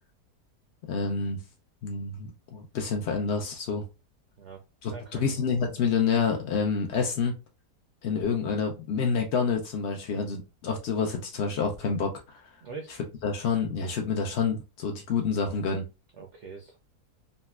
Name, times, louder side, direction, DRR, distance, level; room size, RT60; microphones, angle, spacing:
voice 1, 0.9-1.4 1.8-3.8 4.8-7.4 8.0-12.4 13.2-15.9, left 5 dB, 90° left, 0.5 m, -28 dB
voice 2, 4.9-5.4 12.6-13.0 16.2-16.8, right 4 dB, 75° right, 0.6 m, -43 dB
3.9 x 2.1 x 2.2 m
omnidirectional pair, 1.8 m